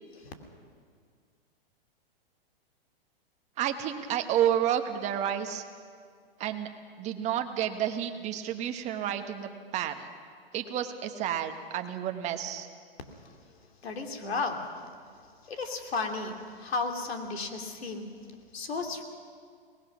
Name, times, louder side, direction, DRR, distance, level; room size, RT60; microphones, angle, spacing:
voice 1, 3.6-5.6 6.4-6.7 7.0-10.1 10.5-12.7, right 10 dB, 25° right, 6 dB, 1.2 m, -30 dB
voice 2, 13.8-14.6 15.4-18.1 18.5-19.0, left 3 dB, 85° left, 4 dB, 2.8 m, -33 dB
23.0 x 19.0 x 6.2 m, 2.1 s
hypercardioid pair, 145°, 30 cm